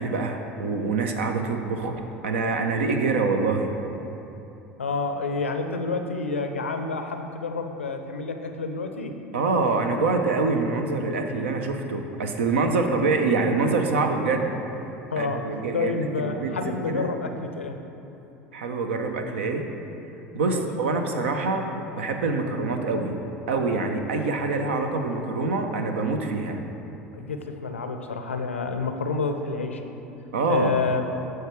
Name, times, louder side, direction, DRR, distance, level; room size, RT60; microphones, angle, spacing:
voice 1, 0.0-3.7 9.3-14.5 15.2-17.1 18.5-19.7 20.3-21.7 22.0-23.2 23.5-26.6 30.3-30.8, right 3 dB, 75° right, 5 dB, 0.7 m, -25 dB
voice 2, 4.8-9.2 15.1-15.4 15.7-17.8 20.4-20.7 27.1-29.8 30.5-31.0, left 4 dB, 85° left, 6 dB, 0.5 m, -29 dB
14.0 x 4.7 x 3.2 m, 3.0 s
figure-of-eight pair, 70°, 7 cm